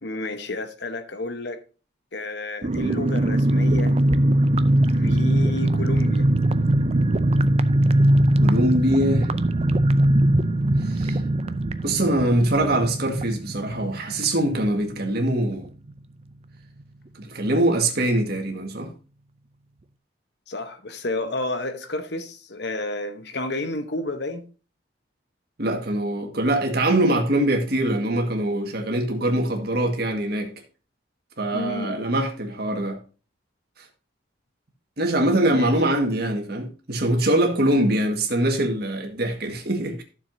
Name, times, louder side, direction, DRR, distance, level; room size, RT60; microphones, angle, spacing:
voice 1, 0.0-1.6 2.1-4.0 4.9-6.3 20.5-24.4 31.5-32.0 35.5-35.7, left 2 dB, 60° left, 1.1 m, -31 dB
sound 1, 2.6-15.0 15.2-15.3 15.6-15.9, right 1 dB, 30° right, 0.5 m, -21 dB
voice 2, 8.4-9.3 10.8-11.2 11.8-15.7 17.2-18.9 25.6-30.5 31.4-33.0 35.0-40.0, right 1 dB, 55° right, 1.8 m, -23 dB
12.0 x 7.0 x 2.7 m
head